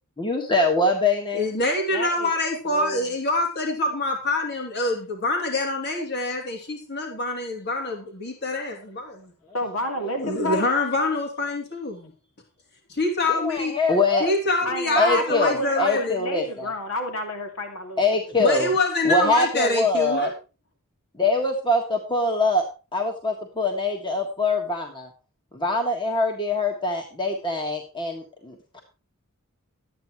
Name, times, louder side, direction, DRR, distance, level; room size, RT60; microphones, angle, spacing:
voice 1, 0.2-1.5 10.0-10.1 13.3-14.3 14.6-16.7 18.0-18.7 19.0-20.3 21.1-22.6 22.9-25.1 25.5-28.8, left 2 dB, 20° left, 2 dB, 1.6 m, -24 dB
voice 2, 1.3-9.3 10.2-12.1 12.9-13.7 14.2-16.2 18.4-20.3, left 2 dB, 50° left, 2 dB, 2.9 m, -25 dB
voice 3, 1.9-2.3 2.6-3.1 9.5-10.6 14.6-18.0 18.4-18.5 19.3-19.4, left 1 dB, 70° left, 4 dB, 2.5 m, -30 dB
12.5 x 9.4 x 4.6 m, 0.32 s
head